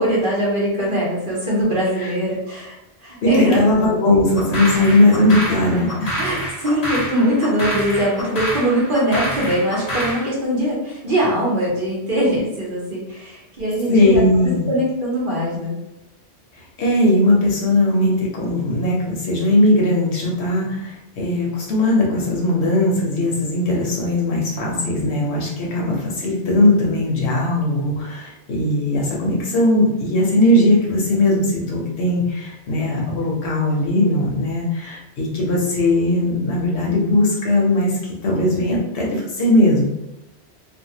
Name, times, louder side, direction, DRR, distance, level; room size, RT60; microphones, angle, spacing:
voice 1, 0.0-2.7 3.0-3.6 6.2-15.8, equal, 50° right, -5 dB, 1.0 m, -21 dB
voice 2, 3.2-6.1 13.9-14.7 16.8-39.8, left 1 dB, 70° left, -2 dB, 1.0 m, -18 dB
sound 1, 4.3-10.3, right 1 dB, 40° left, 0.8 m, -27 dB
2.6 x 2.2 x 2.8 m, 0.92 s
omnidirectional pair, 1.2 m